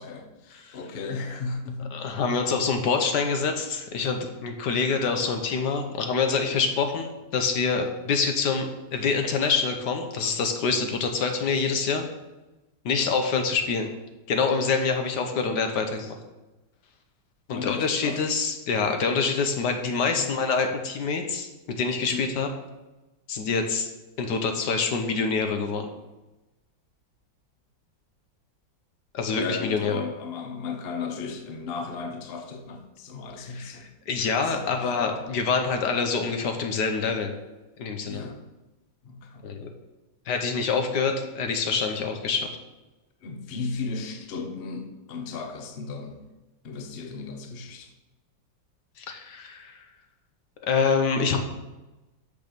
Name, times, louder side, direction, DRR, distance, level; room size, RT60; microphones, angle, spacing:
voice 1, 0.0-2.0 17.5-18.2 20.2-20.3 22.1-22.3 29.4-33.9 34.4-35.2 38.0-38.4 39.0-39.7 43.2-46.2 46.6-47.9, left 4 dB, 40° left, 5 dB, 0.9 m, -35 dB
voice 2, 1.9-12.1 12.8-13.9 14.3-16.2 17.5-22.5 23.3-23.9 24.2-25.9 29.1-30.0 33.4-37.3 37.8-38.3 39.4-39.7 40.3-42.6 49.0-49.8 50.6-51.4, left 5 dB, 70° left, 5 dB, 1.4 m, -26 dB
6.9 x 6.0 x 6.7 m, 1.1 s
omnidirectional pair, 2.0 m